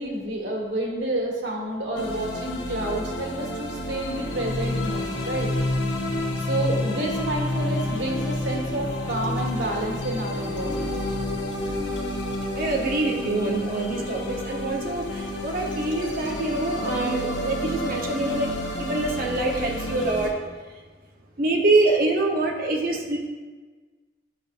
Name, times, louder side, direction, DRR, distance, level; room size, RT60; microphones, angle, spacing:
voice 1, 0.0-5.5 6.4-10.9, right 1 dB, 90° right, -2 dB, 1.9 m, -29 dB
sound 1, 2.0-20.3, left 1 dB, 80° left, 1.1 m, -29 dB
voice 2, 12.6-20.3 21.4-23.2, right 2 dB, 50° right, 0 dB, 1.0 m, -25 dB
10.0 x 6.3 x 2.6 m, 1.4 s
head